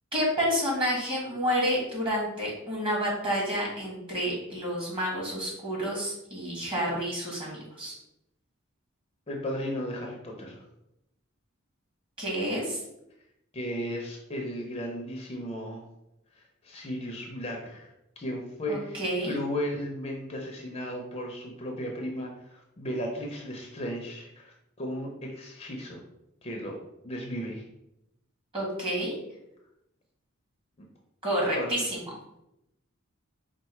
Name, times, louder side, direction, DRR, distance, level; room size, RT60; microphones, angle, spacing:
voice 1, 0.1-8.0 12.2-12.8 18.7-19.4 28.5-29.2 31.2-32.0, equal, 25° right, -3 dB, 1.6 m, -29 dB
voice 2, 9.3-10.6 13.5-15.8 16.4-19.0 19.3-26.0 26.4-26.8 27.0-27.6 31.5-31.7, equal, 30° left, 1 dB, 0.6 m, -35 dB
4.6 x 2.4 x 4.4 m, 0.85 s
head